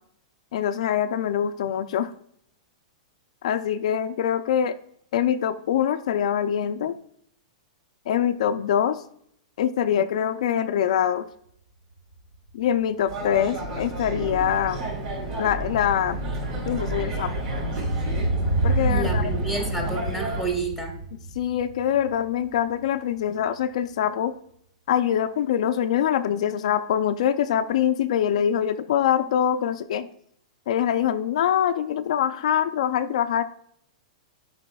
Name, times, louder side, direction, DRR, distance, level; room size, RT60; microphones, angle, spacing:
voice 1, 0.5-2.1 3.4-4.8 5.1-6.9 8.1-9.0 9.6-11.3 12.5-14.8 15.4-16.2 16.7-17.3 18.6-19.3 21.4-24.3 24.9-30.1 30.7-33.4, left 9 dB, 65° left, 8 dB, 0.4 m, -24 dB
sound 1, 12.1-12.2 12.5-22.8 23.1-23.2, right 2 dB, 80° right, 2.5 m, -30 dB
sound 2, 13.1-20.5, right 1 dB, 35° right, 3.1 m, -32 dB
voice 2, 18.9-20.9, right 3 dB, 5° right, 0 dB, 1.3 m, -30 dB
11.5 x 5.1 x 2.3 m, 0.68 s
supercardioid pair, 160°, 4 cm